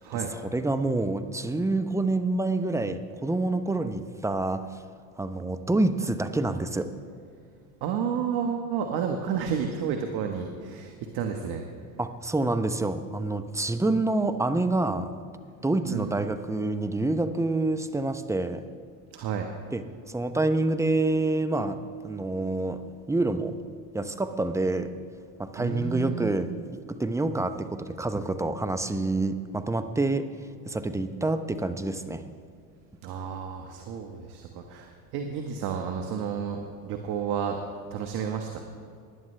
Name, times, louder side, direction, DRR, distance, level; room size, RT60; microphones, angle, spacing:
voice 1, 0.1-4.7 5.2-6.9 12.0-15.1 15.6-18.6 19.7-22.8 23.1-23.6 23.9-24.9 25.4-30.3 30.7-32.2, right 2 dB, 5° right, 9 dB, 0.7 m, -27 dB
voice 2, 7.8-11.6 15.9-16.1 19.1-19.5 25.6-26.3 33.0-37.6 37.9-38.6, right 7 dB, 65° right, 4 dB, 1.4 m, -31 dB
19.5 x 11.0 x 3.3 m, 2.3 s
supercardioid pair, 90°, 42 cm